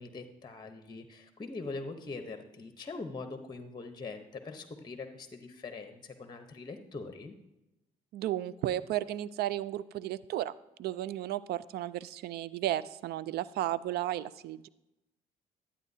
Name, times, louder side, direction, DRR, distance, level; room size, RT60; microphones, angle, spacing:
voice 1, 0.0-7.3, left 3 dB, 25° left, 7 dB, 0.9 m, -42 dB
voice 2, 8.1-14.7, right 13 dB, 70° right, 18 dB, 0.4 m, -34 dB
11.5 x 8.6 x 2.7 m, 0.91 s
supercardioid pair, 60°, 17 cm